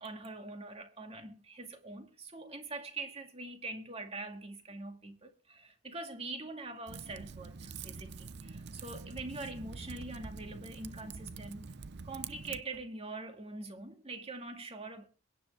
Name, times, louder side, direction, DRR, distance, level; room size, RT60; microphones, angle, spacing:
voice 1, 0.0-11.7 12.0-15.0, right 2 dB, 30° right, 2.1 m, -44 dB
Typing, 6.9-12.6, right 4 dB, 50° right, 0.6 m, -46 dB
22.5 x 10.0 x 3.3 m
head